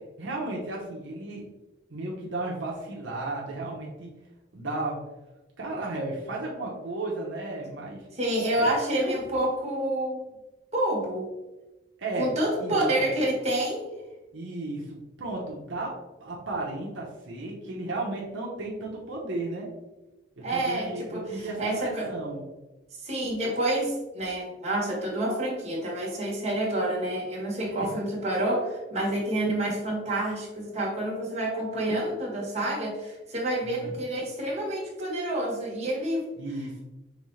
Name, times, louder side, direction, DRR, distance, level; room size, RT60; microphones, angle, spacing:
voice 1, 0.2-1.4 1.9-4.1 4.5-5.0 5.6-8.1 8.5-9.2 12.0-12.3 12.6-12.8 14.3-15.9 16.2-19.7 20.4-22.4 33.6-34.0 36.4-36.8, right 2 dB, 75° right, -3 dB, 0.9 m, -34 dB
voice 2, 8.1-10.2 10.7-11.3 12.2-13.9 20.4-22.1 23.0-36.2, right 1 dB, 35° right, -3 dB, 1.4 m, -28 dB
5.2 x 3.2 x 3.2 m, 1.1 s
head